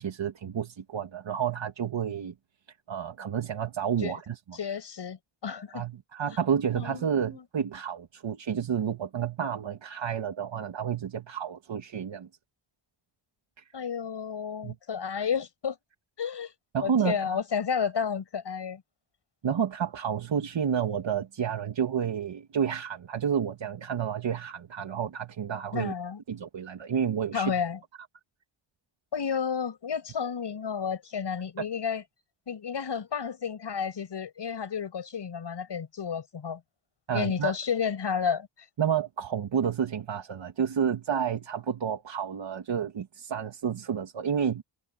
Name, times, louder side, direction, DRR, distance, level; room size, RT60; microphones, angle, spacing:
voice 1, 0.0-2.3 2.9-4.6 5.7-12.3 13.6-13.7 14.6-14.8 16.7-17.4 19.4-25.9 26.3-27.5 31.6-31.7 37.1-37.6 38.8-44.6, right 8 dB, 70° right, 2.6 m, -30 dB
voice 2, 4.5-5.8 6.8-7.4 13.7-15.8 16.2-16.5 16.8-18.8 25.7-26.2 27.3-27.8 29.1-32.0 32.5-36.6 37.1-38.5, left 7 dB, 60° left, 7.5 m, -31 dB
wide cardioid pair, 125°, 47 cm